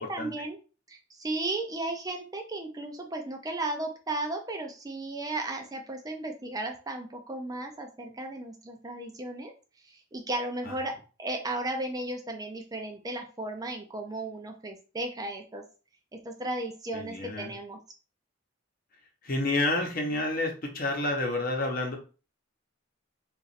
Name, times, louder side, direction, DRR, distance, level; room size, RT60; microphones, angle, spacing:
voice 1, 0.1-0.6 0.9-9.5 9.8-10.9 11.2-15.6 16.2-17.8, right 2 dB, 20° right, 3 dB, 0.5 m, -35 dB
voice 2, 16.9-17.5 19.2-22.0, left 2 dB, 45° left, 2 dB, 0.9 m, -29 dB
3.0 x 2.5 x 4.1 m, 0.35 s
head